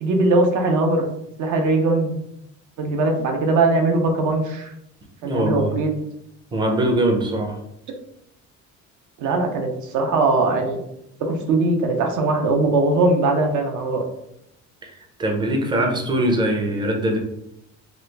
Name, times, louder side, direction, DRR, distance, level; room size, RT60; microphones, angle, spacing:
voice 1, 0.0-1.0 1.4-2.1 2.8-4.7 5.2-5.9 9.2-10.8 11.2-14.0, right 2 dB, 70° right, 3 dB, 0.7 m, -20 dB
voice 2, 5.2-5.7 6.5-7.6 14.8-17.2, right 1 dB, 15° right, 2 dB, 0.4 m, -22 dB
3.0 x 2.3 x 3.2 m, 0.79 s
cardioid pair, 165°, 31 cm